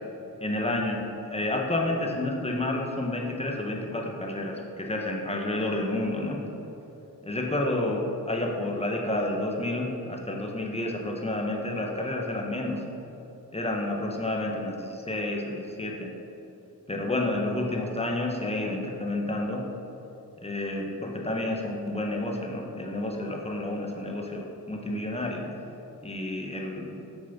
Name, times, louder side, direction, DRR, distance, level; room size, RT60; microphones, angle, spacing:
voice 1, 0.4-6.4 7.2-12.8 13.5-16.1 16.9-19.7 20.4-25.4 26.0-27.1, left 1 dB, 15° left, 0 dB, 1.4 m, -30 dB
7.3 x 6.4 x 5.6 m, 3.0 s
cardioid pair, 70°, 36 cm